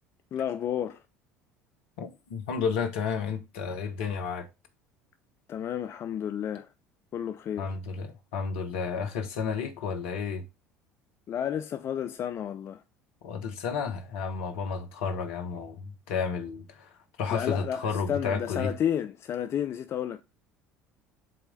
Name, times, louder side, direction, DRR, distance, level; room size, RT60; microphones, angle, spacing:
voice 1, 0.3-1.0 5.5-6.7 7.1-7.7 11.3-12.8 17.3-20.2, left 9 dB, 35° left, 0.4 m, -31 dB
voice 2, 2.0-4.5 7.6-10.4 13.2-16.9 17.2-18.7, left 5 dB, 60° left, 1.2 m, -32 dB
7.6 x 3.2 x 5.1 m
figure-of-eight pair, 65°, 8 cm